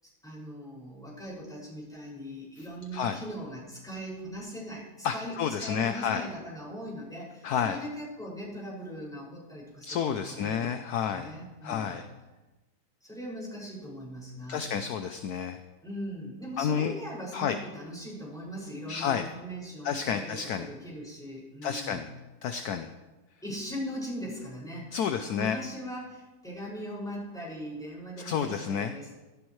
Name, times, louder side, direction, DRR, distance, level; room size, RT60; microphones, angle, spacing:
voice 1, 0.0-10.7 11.0-12.0 13.0-14.7 15.8-22.1 23.4-24.9 25.2-29.2, equal, ahead, -6 dB, 5.9 m, -40 dB
voice 2, 5.0-6.2 7.4-7.8 9.9-11.3 11.6-12.1 14.5-15.6 16.6-16.9 17.3-17.6 18.9-19.3 19.8-20.7 21.6-22.1 22.4-22.9 24.9-25.6 28.2-28.9, left 8 dB, 65° left, 8 dB, 1.0 m, -30 dB
16.5 x 15.0 x 3.2 m, 1.1 s
omnidirectional pair, 2.1 m